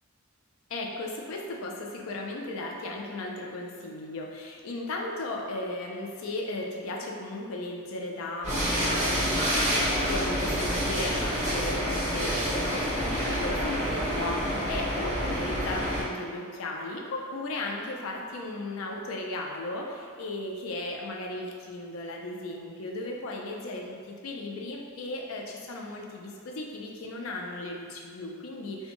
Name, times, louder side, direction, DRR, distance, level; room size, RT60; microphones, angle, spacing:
voice 1, 0.7-28.9, left 2 dB, 70° left, 0 dB, 0.4 m, -36 dB
sound 1, 8.4-16.0, equal, 35° right, 1.1 m, -28 dB
2.6 x 2.2 x 2.9 m, 2.1 s
head